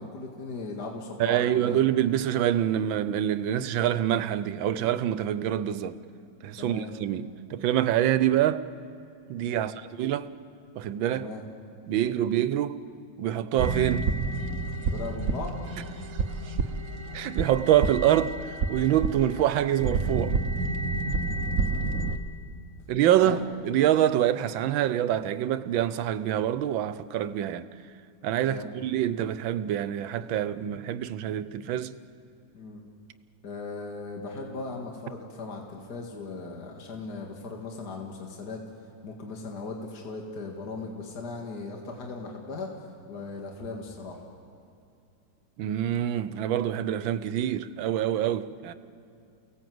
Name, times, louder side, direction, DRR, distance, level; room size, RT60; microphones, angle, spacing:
voice 1, 0.0-1.8 6.6-6.9 9.5-9.7 11.1-11.4 11.9-12.1 14.9-15.6 23.2-23.4 28.4-28.8 32.5-32.8 33.4-38.6 39.0-42.7 43.1-44.2, left 3 dB, 55° left, 2.6 m, -38 dB
voice 2, 1.2-6.0 6.4-8.6 9.3-10.3 10.8-11.3 11.9-12.8 13.2-14.1 17.1-20.4 22.9-27.6 28.2-32.0 45.6-48.7, right 11 dB, 85° right, 1.5 m, -26 dB
sound 1, 13.6-22.2, right 4 dB, 50° right, 1.3 m, -29 dB
29.5 x 18.0 x 7.8 m
omnidirectional pair, 2.1 m